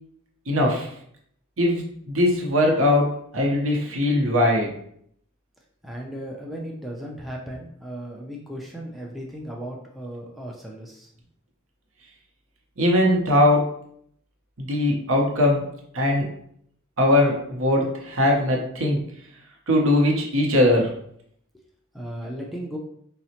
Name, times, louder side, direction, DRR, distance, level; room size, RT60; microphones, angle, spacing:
voice 1, 0.5-0.9 1.6-4.7 12.8-13.7 14.6-15.7 15.9-16.3 17.0-19.0 19.7-20.9, left 1 dB, 70° right, 0 dB, 0.8 m, -20 dB
voice 2, 5.8-11.1 21.5-21.6 21.9-22.8, right 1 dB, ahead, -2 dB, 0.3 m, -36 dB
3.9 x 2.1 x 2.8 m, 0.68 s
head